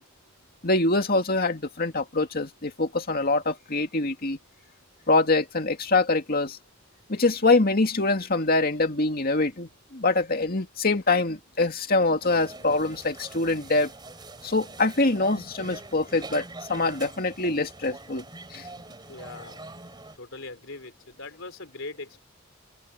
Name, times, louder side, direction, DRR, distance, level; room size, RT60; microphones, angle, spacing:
voice 1, 0.6-4.4 5.1-6.6 7.1-13.9 14.4-18.2 18.5-18.7, left 3 dB, 45° left, 2.3 m, -24 dB
sound 1, 12.2-20.2, right 2 dB, 20° right, 3.5 m, -44 dB
voice 2, 19.1-19.7 20.0-22.2, left 3 dB, 70° left, 3.9 m, -41 dB
open air
head